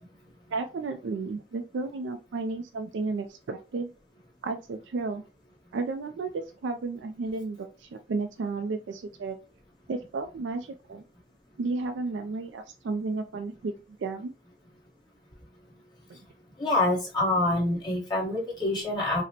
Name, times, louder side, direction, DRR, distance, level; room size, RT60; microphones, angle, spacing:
voice 1, 0.5-3.9 4.4-5.2 5.7-9.4 9.9-11.0 11.6-13.7 14.0-14.3 16.1-16.2, right 3 dB, 65° right, 6 dB, 0.3 m, -33 dB
voice 2, 16.6-19.2, left 2 dB, 20° left, -4 dB, 1.2 m, -26 dB
4.9 x 2.0 x 2.8 m, 0.33 s
head